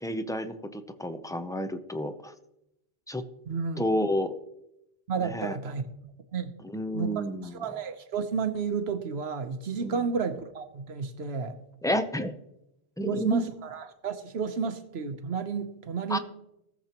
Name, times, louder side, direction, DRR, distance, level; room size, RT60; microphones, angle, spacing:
voice 1, 0.0-2.3 3.1-3.2 3.8-4.3 5.2-5.6 6.6-7.6 9.8-10.0 11.8-12.3 13.0-13.5 16.1-16.2, equal, 5° left, 0.4 m, -30 dB
voice 2, 3.5-3.8 5.1-5.8 6.3-6.5 6.9-7.1 7.4-11.6 13.0-16.2, right 5 dB, 85° right, 1.2 m, -31 dB
18.0 x 7.3 x 3.0 m
omnidirectional pair, 1.0 m